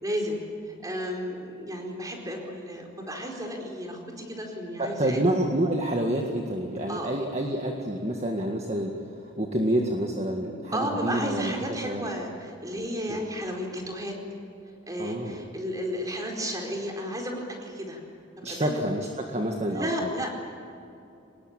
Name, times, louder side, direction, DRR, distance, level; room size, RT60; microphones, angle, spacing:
voice 1, 0.0-0.4 0.7-5.2 6.9-7.1 10.7-14.2 14.9-18.0 18.5-18.8 19.7-20.3, equal, 15° right, 1 dB, 4.5 m, -33 dB
voice 2, 4.8-9.1 9.4-12.1 13.1-13.2 15.0-15.5 18.4-19.9, right 1 dB, 30° right, 1 dB, 1.9 m, -28 dB
25.5 x 20.5 x 9.0 m, 2.7 s
head